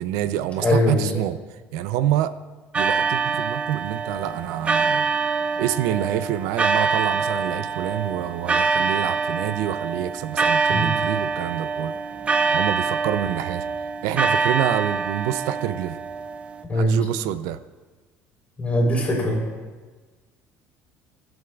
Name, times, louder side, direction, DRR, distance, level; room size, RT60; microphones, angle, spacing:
voice 1, 0.0-2.3 2.7-5.1 5.6-11.9 12.5-13.7 14.0-16.0 16.7-17.6, right 12 dB, 85° right, 14 dB, 0.4 m, -27 dB
voice 2, 0.6-1.1 10.7-10.9 16.6-17.0 18.6-19.4, left 1 dB, 25° left, -2 dB, 3.5 m, -21 dB
sound 1, 2.7-16.6, right 4 dB, 20° right, 0.4 m, -25 dB
19.0 x 7.7 x 2.3 m, 1.3 s
cardioid pair, 115°, 6 cm